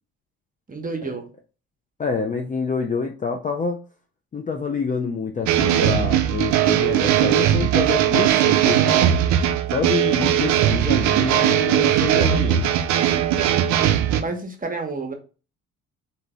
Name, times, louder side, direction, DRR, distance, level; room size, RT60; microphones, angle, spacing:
voice 1, 0.7-1.3 14.1-15.1, right 3 dB, 20° right, 5 dB, 0.9 m, -30 dB
voice 2, 2.0-3.8 4.3-9.1 9.7-12.7, left 5 dB, 20° left, 3 dB, 0.4 m, -27 dB
sound 1, 5.5-14.2, right 11 dB, 45° right, 0.5 m, -19 dB
3.8 x 2.8 x 3.5 m, 0.35 s
figure-of-eight pair, 45°, 41 cm